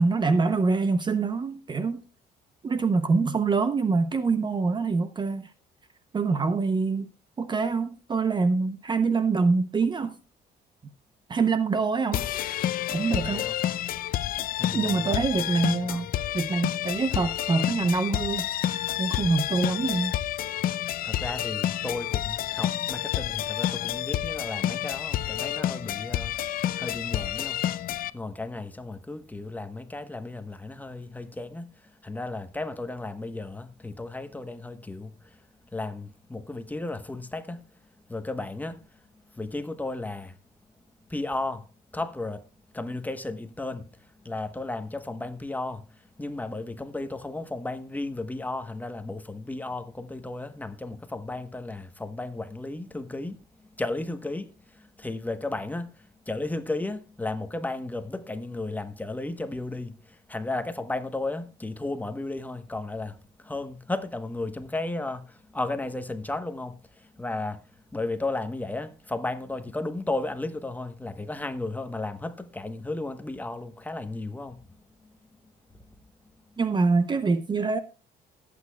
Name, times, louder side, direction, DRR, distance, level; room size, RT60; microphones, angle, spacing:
voice 1, 0.0-2.0 2.6-5.5 6.1-7.1 7.4-10.1 11.3-12.2 12.9-13.5 14.7-16.1 16.3-20.1 76.6-77.8, right 4 dB, 25° right, 0.7 m, -25 dB
sound 1, 12.1-28.1, left 12 dB, 60° left, 0.5 m, -29 dB
voice 2, 13.1-13.5 14.3-15.2 15.8-16.1 21.0-26.4 26.8-27.6 28.1-31.7 32.0-35.4 35.7-37.6 38.1-38.8 39.3-40.3 41.1-41.7 41.9-42.4 42.7-43.8 44.2-53.4 53.8-67.6 67.9-74.6 75.0-75.1, left 2 dB, 10° left, 1.0 m, -34 dB
19.5 x 8.5 x 2.3 m
cardioid pair, 110°, 17 cm